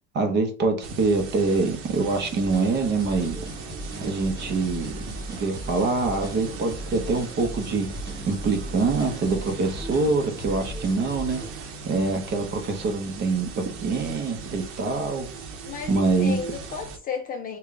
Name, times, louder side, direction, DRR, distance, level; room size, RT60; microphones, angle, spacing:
voice 1, 0.1-3.4 4.0-5.0 5.3-8.0 8.3-11.4 11.9-15.3 15.9-16.4, right 3 dB, 30° right, 0.7 m, -25 dB
sound 1, 0.8-17.0, right 4 dB, 90° right, 0.9 m, -39 dB
sound 2, 2.4-11.5, right 1 dB, 15° right, 1.0 m, -37 dB
voice 2, 15.6-17.6, left 6 dB, 30° left, 0.3 m, -33 dB
3.5 x 2.2 x 3.6 m
cardioid pair, 165°, 32 cm